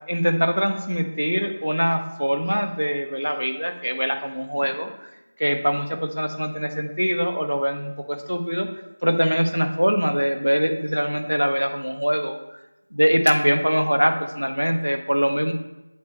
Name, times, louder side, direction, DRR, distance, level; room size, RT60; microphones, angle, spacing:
voice 1, 0.1-4.9 5.4-8.7 9.0-12.4 12.9-15.5, equal, 85° right, 6 dB, 1.3 m, -23 dB
8.1 x 6.4 x 4.4 m, 0.95 s
figure-of-eight pair, 175°, 0 cm